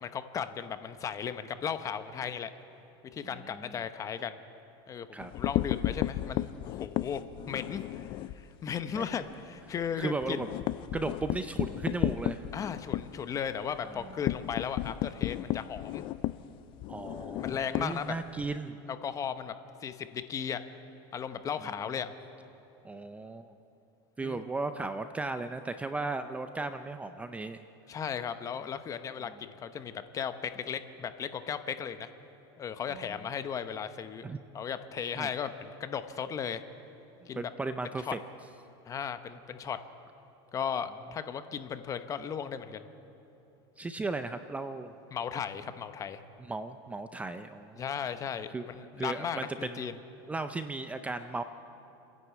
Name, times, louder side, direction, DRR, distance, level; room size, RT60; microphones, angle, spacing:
voice 1, 0.0-2.5 3.1-4.4 4.9-10.4 12.5-16.0 17.4-18.1 18.9-19.5 19.8-20.6 21.1-22.1 24.2-24.4 27.9-32.1 32.6-34.2 34.5-36.6 37.3-37.5 38.0-38.1 38.9-39.8 40.5-42.9 45.1-46.2 47.7-50.0, left 7 dB, 25° left, 10 dB, 0.9 m, -36 dB
voice 2, 3.3-3.8 5.1-5.3 8.9-9.1 10.0-10.5 10.9-12.4 16.9-18.8 21.6-21.7 22.8-23.5 24.2-27.6 32.9-33.2 34.2-34.4 35.2-35.3 37.3-38.2 43.8-44.9 46.4-47.8 48.5-48.7 49.0-49.9 50.3-51.4, right 3 dB, 10° right, 9 dB, 0.5 m, -36 dB
sound 1, 5.2-8.4 8.8-9.0 9.3-9.4 9.7-18.5, left 14 dB, 40° left, 0.5 m, -33 dB
29.5 x 10.5 x 8.3 m, 3.0 s
supercardioid pair, 140°, 13 cm